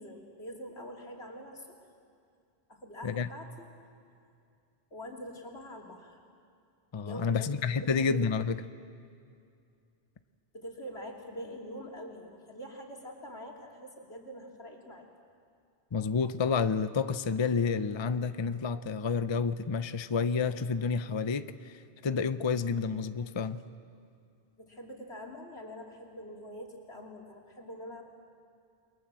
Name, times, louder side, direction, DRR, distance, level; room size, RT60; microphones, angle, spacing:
voice 1, 0.0-1.8 2.7-3.7 4.9-6.2 6.9-7.9 10.5-15.1 24.6-28.0, equal, 90° left, 3.4 m, -45 dB
voice 2, 6.9-8.6 15.9-23.6, left 5 dB, 30° left, 0.6 m, -30 dB
29.5 x 22.5 x 7.6 m
omnidirectional pair, 1.1 m